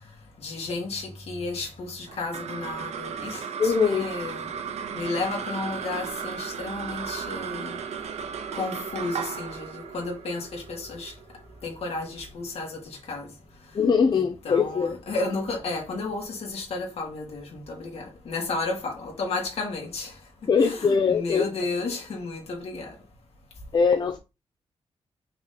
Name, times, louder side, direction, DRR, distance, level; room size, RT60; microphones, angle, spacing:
voice 1, 0.4-4.5 4.9-7.8 8.5-11.1 11.6-13.3 14.1-20.2 20.6-23.0, left 3 dB, 70° left, 2.6 m, -32 dB
sound 1, 2.1-12.7, right 7 dB, 85° right, 0.8 m, -35 dB
voice 2, 3.6-4.1 13.7-15.0 20.5-21.5 23.7-24.2, left 5 dB, 45° left, 0.8 m, -22 dB
5.8 x 5.1 x 4.0 m
wide cardioid pair, 140°, 11 cm